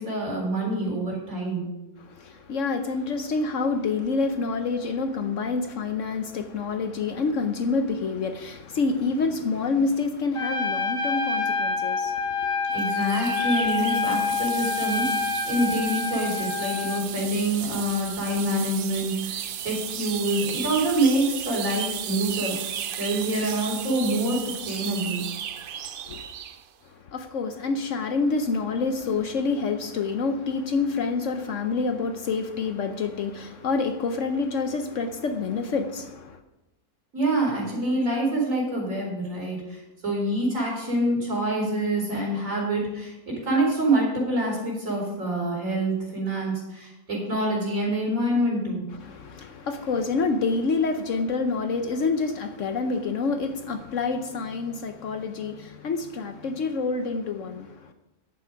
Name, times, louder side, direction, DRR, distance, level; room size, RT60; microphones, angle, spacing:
voice 1, 0.0-1.7 12.7-25.2 37.1-48.8, right 1 dB, 60° right, 4.4 m, -26 dB
voice 2, 2.0-12.5 26.1-26.3 26.9-36.4 49.0-57.9, left 4 dB, 60° left, 1.0 m, -27 dB
Trumpet, 10.3-17.1, left 4 dB, 40° left, 1.5 m, -27 dB
sound 1, 12.8-26.6, right 9 dB, 85° right, 0.4 m, -34 dB
10.5 x 8.2 x 5.2 m
omnidirectional pair, 1.6 m